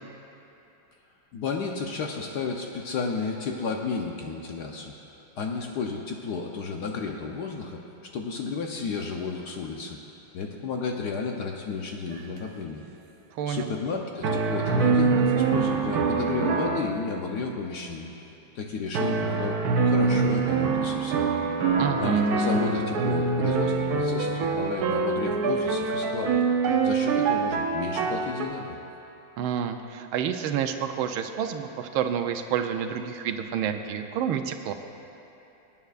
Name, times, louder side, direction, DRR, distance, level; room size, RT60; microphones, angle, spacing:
voice 1, 1.3-4.9 5.4-7.8 8.1-10.0 10.3-12.8 13.5-18.1 18.5-21.2 22.0-26.4 26.8-28.8, left 4 dB, 65° left, 1 dB, 1.2 m, -32 dB
sound 1, 12.1-12.4 14.2-16.9 18.9-28.4, right 4 dB, 65° right, 1.0 m, -24 dB
voice 2, 13.3-13.7 21.8-22.2 29.4-34.7, right 8 dB, 80° right, 7 dB, 1.4 m, -29 dB
24.0 x 9.2 x 2.5 m, 2.9 s
omnidirectional pair, 2.3 m